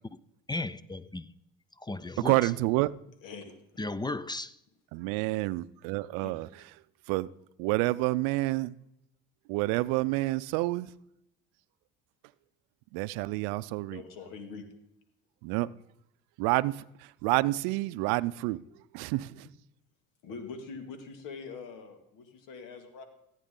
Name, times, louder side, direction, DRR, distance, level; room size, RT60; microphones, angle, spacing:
voice 1, 0.5-1.3 1.8-2.5 3.8-4.6, left 2 dB, 15° left, 0.5 m, -35 dB
voice 2, 2.2-2.9 4.9-6.5 7.1-7.3 7.6-8.7 9.5-10.9 12.9-14.0 15.4-15.7 16.4-18.6 18.9-19.5, right 20 dB, 80° right, 0.5 m, -28 dB
voice 3, 3.2-3.5 6.2-6.3 13.9-14.6 20.2-23.0, left 5 dB, 70° left, 2.2 m, -43 dB
15.0 x 9.1 x 3.8 m
supercardioid pair, 70°, 33 cm